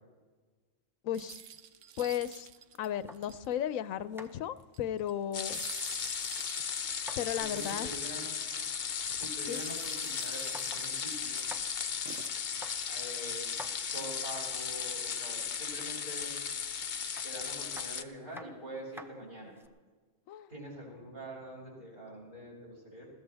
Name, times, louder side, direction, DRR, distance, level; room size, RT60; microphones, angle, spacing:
voice 1, 1.0-1.4 2.0-2.5 2.8-5.6 7.2-7.9 9.5-9.6 20.3-20.5, left 10 dB, 90° left, 15 dB, 1.0 m, -34 dB
sound 1, 1.1-3.7 4.2-4.3 4.6-8.0 9.3-11.6 12.1-12.9 13.5-14.1, right 8 dB, 70° right, 1.0 m, -48 dB
sound 2, 1.4-3.5 3.8-6.1 6.3-7.4 7.7-7.8 8.1-9.4 9.8-9.9 10.2-10.9 11.2-11.9 12.4-14.4 15.3-15.9 17.1-19.7, equal, 5° right, 0.5 m, -51 dB
sound 3, 5.3-18.0, left 7 dB, 45° left, 0.7 m, -36 dB
voice 2, 7.3-8.3 9.1-11.4 12.9-13.5 13.9-16.3 17.2-19.6 20.5-23.1, equal, 45° right, -5 dB, 6.3 m, -45 dB
21.0 x 16.0 x 3.4 m, 1.4 s
omnidirectional pair, 1.4 m